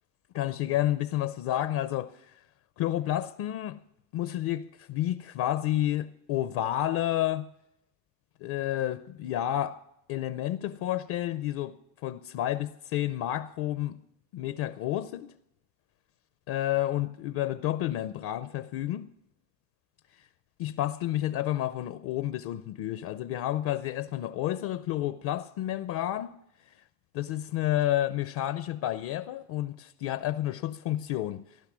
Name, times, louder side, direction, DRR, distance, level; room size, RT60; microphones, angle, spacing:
voice 1, 0.3-2.4 2.8-3.8 4.1-7.5 8.4-9.8 10.1-11.8 12.0-14.0 14.3-15.3 16.5-19.1 20.2-20.3 20.6-26.4 26.6-26.7 27.1-31.4, left 13 dB, 65° left, 0.7 m, -30 dB
15.5 x 11.5 x 6.1 m
cardioid pair, 110°, 40 cm